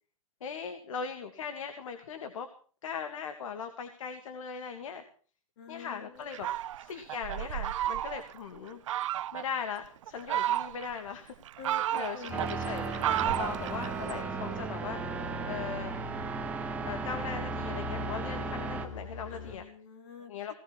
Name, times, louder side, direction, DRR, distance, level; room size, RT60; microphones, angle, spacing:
voice 1, 0.4-2.5 2.8-5.0 5.7-6.5 6.8-8.8 9.3-11.4 11.9-15.0 15.5-15.9 16.9-19.6 20.3-20.5, left 6 dB, 80° left, 8 dB, 1.9 m, -39 dB
voice 2, 5.6-6.5 11.6-12.7 19.3-20.5, left 5 dB, 50° left, 6 dB, 3.2 m, -47 dB
Fowl, 6.3-8.4 8.9-9.5 10.1-11.0 11.4-14.2, right 12 dB, 70° right, 0.6 m, -32 dB
sound 1, 12.3-19.6, left 3 dB, 20° left, 2.3 m, -42 dB
sound 2, 12.3-18.9, right 5 dB, 10° right, 1.2 m, -36 dB
18.0 x 15.0 x 4.4 m, 0.43 s
supercardioid pair, 165°, 17 cm